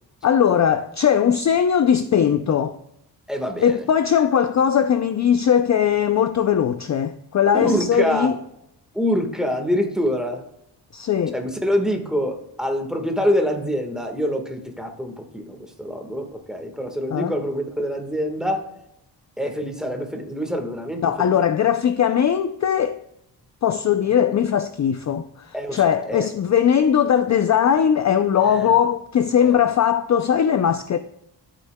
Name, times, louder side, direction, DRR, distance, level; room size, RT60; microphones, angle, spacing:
voice 1, 0.2-2.8 3.6-8.3 10.9-11.3 17.1-17.3 21.0-23.0 23.6-31.0, left 8 dB, 40° left, 0.4 m, -19 dB
voice 2, 3.3-3.9 7.5-8.3 8.9-10.4 11.3-18.7 19.4-21.4 24.2-24.3 25.5-26.3 28.4-28.8 29.4-29.6, equal, ahead, 1.4 m, -25 dB
13.5 x 8.3 x 2.2 m
cardioid pair, 95°, 44 cm